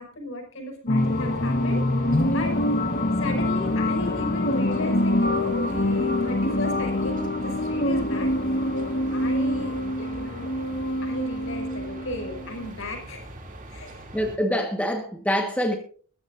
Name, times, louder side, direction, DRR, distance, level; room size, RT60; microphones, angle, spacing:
voice 1, 0.0-1.8 2.3-2.6 3.2-8.6 9.1-10.5 11.0-13.3 13.7-14.1, left 1 dB, 60° left, 5.6 m, -35 dB
sound 1, 0.9-12.7, left 1 dB, 40° left, 1.2 m, -25 dB
sound 2, 1.0-14.4, right 1 dB, 35° right, 2.8 m, -40 dB
voice 2, 14.1-15.8, equal, 5° left, 1.4 m, -25 dB
21.0 x 14.5 x 2.6 m
head